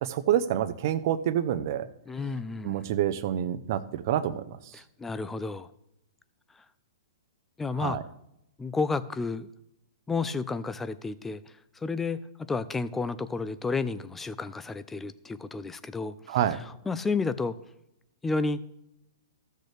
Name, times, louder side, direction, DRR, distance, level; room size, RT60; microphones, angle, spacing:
voice 1, 0.0-1.9 2.6-4.6 7.8-8.0 16.3-16.6, right 11 dB, 55° right, 0.7 m, -27 dB
voice 2, 2.1-2.9 4.7-5.7 7.6-8.0 8.6-9.5 10.1-11.4 11.8-12.2 12.5-17.6 18.2-18.6, left 4 dB, 10° left, 0.4 m, -31 dB
14.5 x 6.5 x 3.4 m
hypercardioid pair, 135°, 2 cm